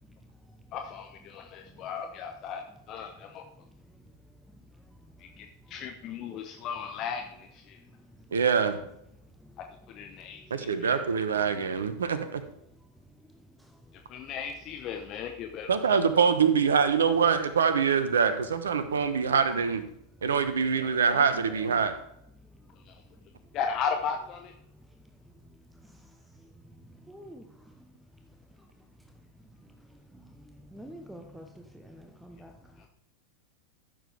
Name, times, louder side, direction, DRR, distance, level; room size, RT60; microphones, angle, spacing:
voice 1, 0.7-3.4 5.2-7.8 9.6-11.0 14.1-15.7 22.9-23.0 23.5-24.5, left 6 dB, 35° left, 4 dB, 0.9 m, -36 dB
voice 2, 8.3-8.7 10.5-12.4 15.7-19.8 20.2-21.9, right 6 dB, 70° right, 11 dB, 1.0 m, -24 dB
voice 3, 20.8-21.3 27.1-27.4 30.7-31.5 31.8-32.5, equal, 5° right, 5 dB, 0.9 m, -46 dB
14.0 x 7.2 x 3.4 m, 0.76 s
figure-of-eight pair, 90°, 0 cm